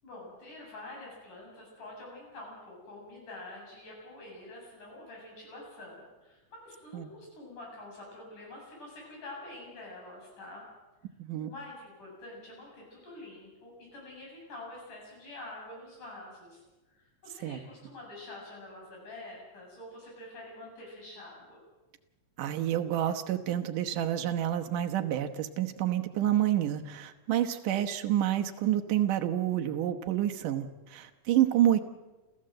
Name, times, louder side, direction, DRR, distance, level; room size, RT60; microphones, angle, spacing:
voice 1, 0.0-10.7 11.4-16.6 16.9-21.6 31.4-31.8, left 2 dB, 75° left, -2 dB, 9.2 m, -47 dB
voice 2, 11.2-11.5 17.4-17.6 22.4-31.8, right 11 dB, 85° right, 6 dB, 2.8 m, -28 dB
28.5 x 15.0 x 7.8 m, 1.1 s
omnidirectional pair, 3.6 m